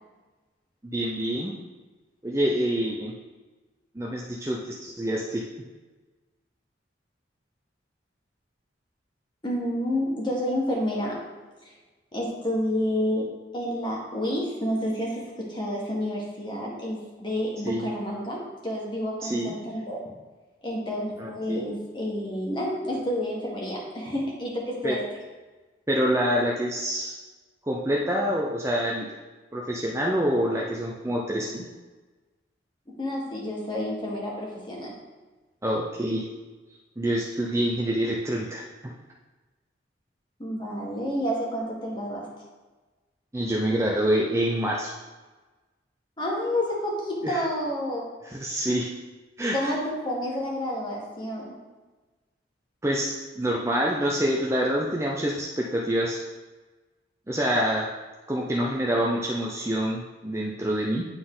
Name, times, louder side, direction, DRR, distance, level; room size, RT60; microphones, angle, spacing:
voice 1, 0.9-1.5 2.2-3.1 4.0-5.4 17.6-17.9 19.2-19.6 21.2-21.7 24.8-25.0 25.9-27.2 27.7-29.1 29.5-31.7 35.6-36.3 37.0-38.9 43.3-44.9 47.2-47.4 48.3-48.9 49.4-49.7 52.8-56.2 57.3-57.9 58.3-61.1, equal, 15° right, -2 dB, 0.5 m, -26 dB
voice 2, 9.4-11.2 11.6-11.7 12.1-20.0 20.6-25.0 33.0-34.9 40.4-42.3 46.2-48.1 49.5-51.6, left 1 dB, 25° left, -3 dB, 1.6 m, -29 dB
9.6 x 4.1 x 3.9 m, 1.2 s
head